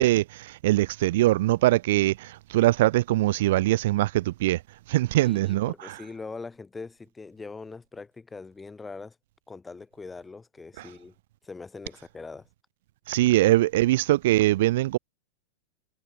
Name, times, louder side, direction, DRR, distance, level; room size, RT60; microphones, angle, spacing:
voice 1, 0.0-4.6 4.9-6.0 13.1-15.0, right 16 dB, 55° right, 1.0 m, -22 dB
voice 2, 5.2-9.1 9.5-11.1 11.4-12.5, left 4 dB, 10° left, 3.0 m, -42 dB
figure-of-eight pair, 90°, 0 cm